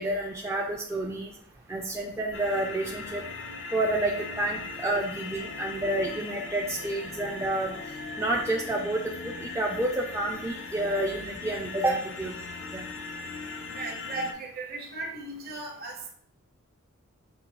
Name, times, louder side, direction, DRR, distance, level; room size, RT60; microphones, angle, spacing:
voice 1, 0.0-1.3 1.7-3.2 3.7-7.7 8.2-12.3 12.7-12.8, right 1 dB, 15° right, -2 dB, 0.3 m, -29 dB
sound 1, 2.3-14.3, left 4 dB, 60° left, 0.5 m, -39 dB
voice 2, 13.7-16.1, right 2 dB, 45° right, 0 dB, 0.9 m, -36 dB
6.6 x 2.2 x 2.8 m, 0.64 s
head